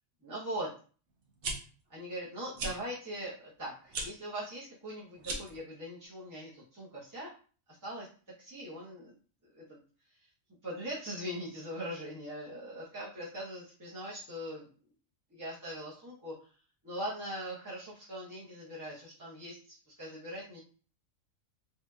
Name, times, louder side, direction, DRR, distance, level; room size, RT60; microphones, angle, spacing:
voice 1, 0.2-0.7 1.4-1.5 1.9-7.3 7.8-8.1 8.4-9.1 9.5-9.8 10.6-14.7 15.3-16.3 16.8-20.6, equal, 20° right, -8 dB, 0.5 m, -41 dB
sound 1, 1.2-1.5 2.5-2.7 3.9-4.1 5.2-5.6, right 3 dB, 65° right, 0.9 m, -36 dB
3.1 x 2.7 x 2.2 m, 0.40 s
omnidirectional pair, 1.4 m